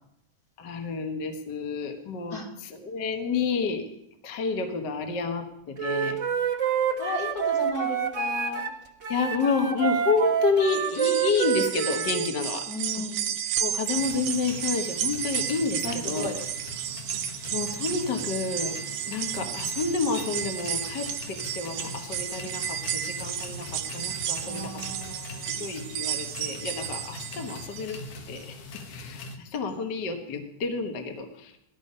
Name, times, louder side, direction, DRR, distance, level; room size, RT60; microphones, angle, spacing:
voice 1, 0.6-2.4 2.6-3.9 4.2-6.2 9.1-12.7 13.6-16.3 17.5-24.8 25.6-28.0 28.3-31.6, left 4 dB, 45° left, 5 dB, 1.4 m, -29 dB
Wind instrument woodwind instrument, 5.8-8.7 9.0-12.2, right 7 dB, 45° right, 0.9 m, -27 dB
voice 2, 7.0-8.7 12.7-13.3 15.8-16.4 24.4-25.6, left 1 dB, 30° left, 0 dB, 3.0 m, -35 dB
sound 1, 10.6-28.0 28.4-28.5 29.6-29.7, right 11 dB, 75° right, 2.2 m, -33 dB
sound 2, 14.0-29.4, left 3 dB, 75° left, 3.1 m, -42 dB
18.5 x 13.5 x 5.5 m, 0.81 s
omnidirectional pair, 3.8 m